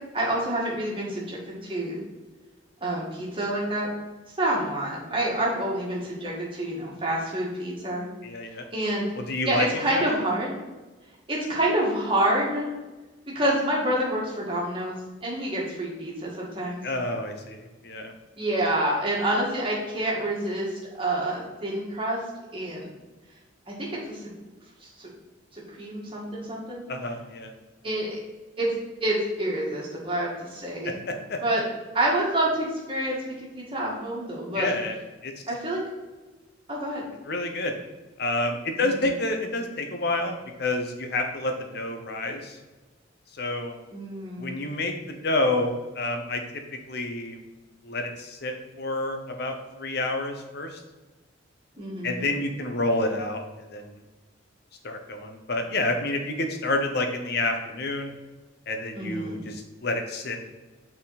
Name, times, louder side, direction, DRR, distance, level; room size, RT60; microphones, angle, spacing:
voice 1, 0.1-2.0 2.8-3.9 4.4-8.0 8.7-9.1 9.4-10.5 11.3-12.7 13.3-16.8 18.4-22.2 22.5-22.9 23.7-24.2 25.0-25.1 25.5-26.8 27.8-28.2 28.6-28.7 29.0-31.0 31.4-31.6 31.9-34.7 35.5-35.8 36.7-37.0 38.8-39.0 43.9-44.5 51.8-52.3 58.9-59.4, right 1 dB, 25° right, -4 dB, 1.8 m, -28 dB
voice 2, 8.2-8.6 9.1-10.1 16.8-18.1 26.9-27.5 31.3-31.4 34.5-35.0 35.2-35.3 37.2-37.7 38.2-42.6 43.4-43.8 44.4-46.4 46.9-47.4 47.8-50.8 52.0-53.4 53.7-54.0 54.8-58.1 58.7-60.5, left 2 dB, 50° left, 4 dB, 0.8 m, -29 dB
6.1 x 4.4 x 4.1 m, 1.2 s
head